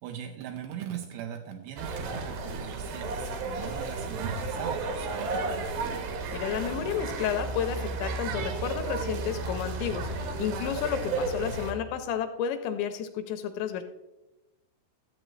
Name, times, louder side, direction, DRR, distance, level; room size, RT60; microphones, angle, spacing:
voice 1, 0.0-6.2, right 9 dB, 85° right, 3 dB, 2.4 m, -40 dB
sound 1, 1.8-11.7, right 3 dB, 70° right, 2.3 m, -33 dB
voice 2, 6.3-13.8, left 8 dB, 80° left, 8 dB, 2.7 m, -31 dB
13.5 x 7.8 x 3.2 m, 1.0 s
omnidirectional pair, 5.4 m